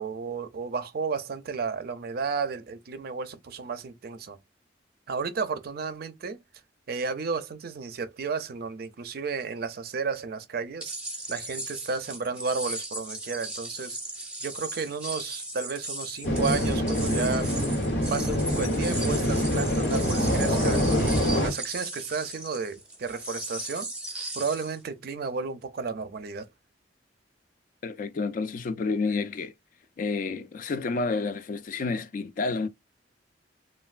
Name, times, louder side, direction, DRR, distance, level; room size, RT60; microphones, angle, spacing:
voice 1, 0.0-4.4 5.1-6.4 6.9-11.0 11.3-14.0 14.4-17.5 18.1-23.9 24.3-26.5, right 5 dB, 55° right, 0.4 m, -32 dB
sound 1, 10.8-24.8, right 1 dB, 5° right, 0.7 m, -37 dB
sound 2, 16.2-21.5, equal, 90° left, 1.1 m, -25 dB
voice 2, 27.8-29.5 30.0-32.7, left 4 dB, 45° left, 0.3 m, -29 dB
3.1 x 2.2 x 2.4 m
head